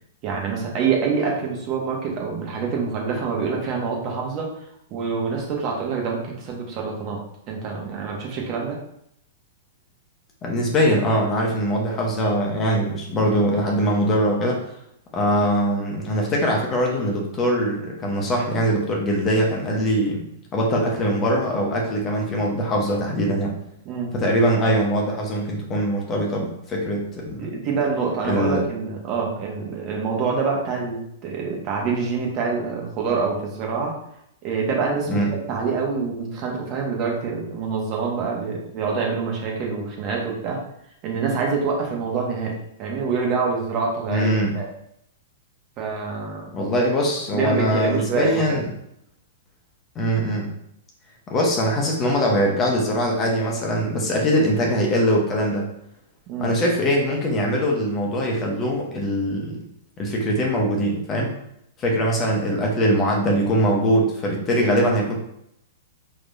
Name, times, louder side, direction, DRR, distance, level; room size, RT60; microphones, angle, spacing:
voice 1, 0.2-4.5 4.9-7.2 7.5-8.8 23.8-24.1 27.4-33.9 34.4-40.6 41.0-44.7 45.8-46.7 47.3-48.6 56.3-56.5, right 5 dB, 40° right, -1 dB, 1.3 m, -26 dB
voice 2, 10.4-14.6 15.1-20.2 20.5-23.5 24.1-27.5 28.2-28.6 35.1-35.3 44.1-44.6 46.5-48.7 49.9-50.5 51.3-55.6 56.4-59.6 60.0-61.3 61.8-65.1, equal, 25° left, -1 dB, 1.2 m, -22 dB
4.7 x 3.7 x 2.7 m, 0.74 s
figure-of-eight pair, 105°, 0 cm